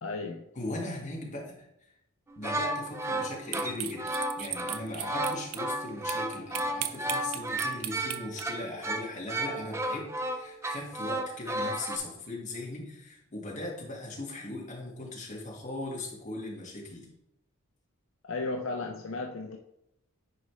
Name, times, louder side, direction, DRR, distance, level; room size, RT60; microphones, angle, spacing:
voice 1, 0.0-0.4 18.2-19.6, left 3 dB, 65° left, 3 dB, 0.5 m, -34 dB
voice 2, 0.5-1.7 2.4-4.1 4.4-17.1, left 2 dB, 35° left, -2 dB, 1.8 m, -39 dB
sound 1, 2.3-12.0, right 1 dB, 15° right, 0.5 m, -33 dB
sound 2, 3.5-5.6 6.1-8.4, right 12 dB, 85° right, 0.5 m, -35 dB
10.0 x 4.2 x 3.2 m, 0.81 s
head